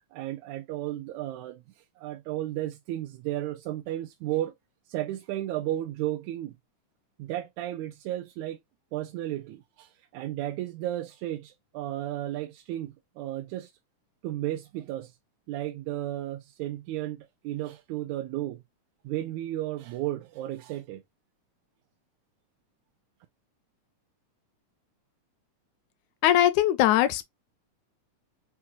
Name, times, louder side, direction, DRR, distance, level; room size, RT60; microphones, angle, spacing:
voice 1, 0.1-1.6 2.0-4.5 4.9-6.5 7.2-8.6 8.9-13.7 14.2-15.1 15.5-18.6 19.0-21.0, right 14 dB, 80° right, 1.8 m, -33 dB
voice 2, 26.2-27.2, left 12 dB, 80° left, 1.9 m, -21 dB
5.9 x 2.3 x 2.8 m
omnidirectional pair, 3.6 m